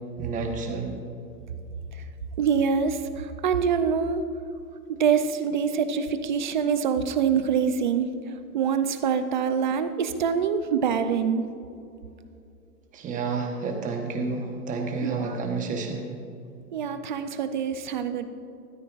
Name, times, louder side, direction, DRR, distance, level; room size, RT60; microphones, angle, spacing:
voice 1, 0.2-1.0 12.9-16.1, right 4 dB, 15° right, 2 dB, 1.1 m, -30 dB
voice 2, 2.4-4.3 4.9-11.4 15.0-15.4 16.7-18.3, right 6 dB, 35° right, 10 dB, 0.4 m, -25 dB
15.0 x 13.0 x 2.5 m, 2.6 s
hypercardioid pair, 145°, 47 cm